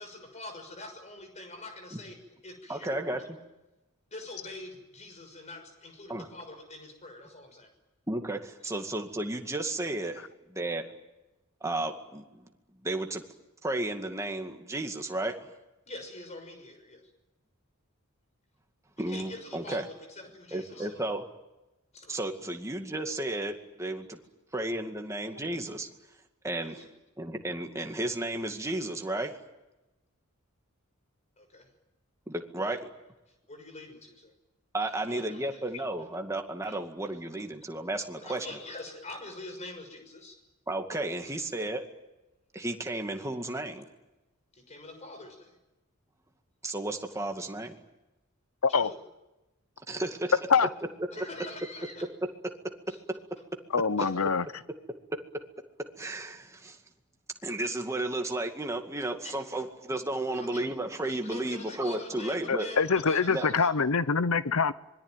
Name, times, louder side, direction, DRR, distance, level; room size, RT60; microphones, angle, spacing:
voice 1, 0.0-2.2 2.4-3.3 4.1-7.7 15.9-17.0 19.1-21.0 21.9-22.2 26.6-26.8 31.4-31.7 33.5-34.3 35.1-35.6 36.6-36.8 38.2-40.4 44.5-45.5 48.7-49.0 51.1-52.0 52.9-53.0 54.0-54.1 59.2-59.3 60.3-60.7 61.0-63.7, left 2 dB, 35° left, 6 dB, 6.2 m, -44 dB
voice 2, 2.7-3.2 6.1-6.3 8.1-10.2 10.5-10.8 11.6-12.4 12.8-13.2 13.6-15.4 19.0-19.8 20.5-21.2 22.1-24.2 24.5-25.9 26.4-26.8 27.2-29.3 32.3-32.9 34.7-38.5 40.7-41.8 42.5-43.8 46.6-47.7 49.9-50.3 51.2-51.3 56.0-56.8 57.4-62.7 63.3-63.5, right 2 dB, 15° right, 4 dB, 2.2 m, -33 dB
voice 3, 53.7-54.4 62.5-64.7, left 5 dB, 75° left, 15 dB, 0.8 m, -25 dB
26.0 x 22.0 x 9.2 m, 1.0 s
head